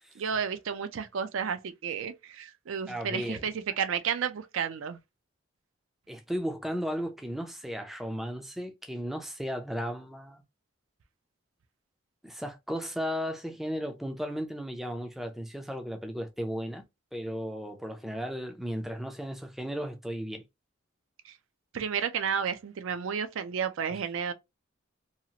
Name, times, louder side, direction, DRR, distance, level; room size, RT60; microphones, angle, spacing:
voice 1, 0.2-5.0 21.2-21.3 21.7-24.3, right 7 dB, 70° right, 0.4 m, -32 dB
voice 2, 2.9-3.5 6.1-10.4 12.2-16.8 17.1-20.4 23.9-24.0, equal, ahead, 0.4 m, -35 dB
2.8 x 2.4 x 2.8 m
head